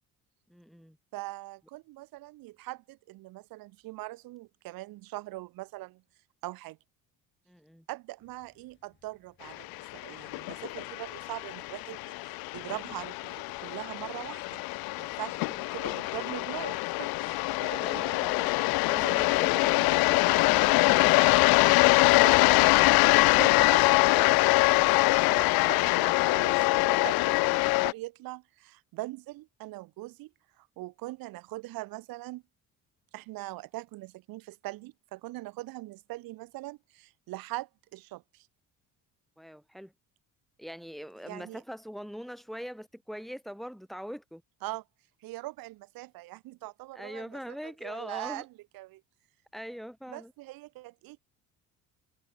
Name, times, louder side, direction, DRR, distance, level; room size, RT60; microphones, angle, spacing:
voice 1, 0.5-1.0 7.5-7.9 15.3-15.5 17.8-21.2 25.1-25.4 39.4-39.9 40.6-44.4 46.9-48.4 49.5-50.3, equal, ahead, 2.5 m, -42 dB
voice 2, 1.1-6.0 6.4-6.8 7.9-14.6 15.0-18.0 19.5-19.6 22.0-22.7 23.0-24.3 25.3-30.3 30.6-32.4 33.1-38.5 41.3-41.6 44.6-44.8 45.2-47.3 47.8-48.5 48.7-49.0 50.1-51.2, right 19 dB, 75° right, 1.4 m, -42 dB
sound 1, 8.2-25.2, left 8 dB, 35° left, 5.0 m, -60 dB
sound 2, 9.6-27.9, left 24 dB, 85° left, 0.5 m, -24 dB
cardioid pair, 165°, 35 cm